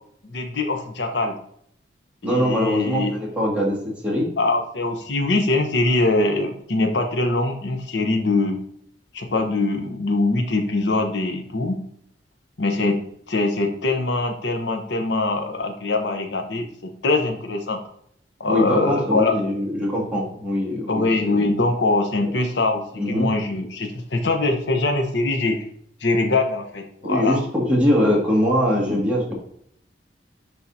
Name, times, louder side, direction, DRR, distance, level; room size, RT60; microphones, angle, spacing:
voice 1, 0.2-1.4 2.2-3.2 4.4-8.6 9.1-11.8 12.6-13.0 13.3-17.8 18.4-19.3 20.9-25.6 26.0-27.4, left 2 dB, 85° left, 4 dB, 0.9 m, -23 dB
voice 2, 2.2-3.8 4.0-4.3 18.5-21.4 22.2-22.3 22.9-23.3 27.0-29.3, equal, 5° right, -5 dB, 2.1 m, -22 dB
10.5 x 3.6 x 2.7 m, 0.67 s
head